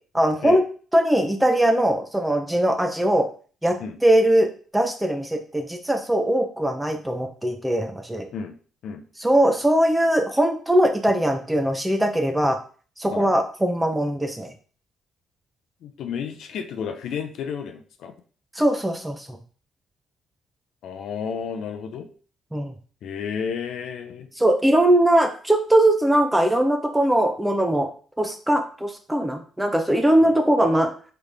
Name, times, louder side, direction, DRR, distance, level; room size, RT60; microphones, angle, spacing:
voice 1, 0.1-0.6 0.9-3.3 3.6-8.3 9.2-12.6 13.0-14.5 18.6-19.4 22.5-22.7 24.4-27.9 28.2-30.9, right 1 dB, 10° right, 5 dB, 0.6 m, -20 dB
voice 2, 15.8-18.1 20.8-22.1 23.0-24.3 30.2-30.3, left 6 dB, 75° left, 6 dB, 0.5 m, -32 dB
3.9 x 3.3 x 3.3 m, 0.41 s
cardioid pair, 90°, 0 cm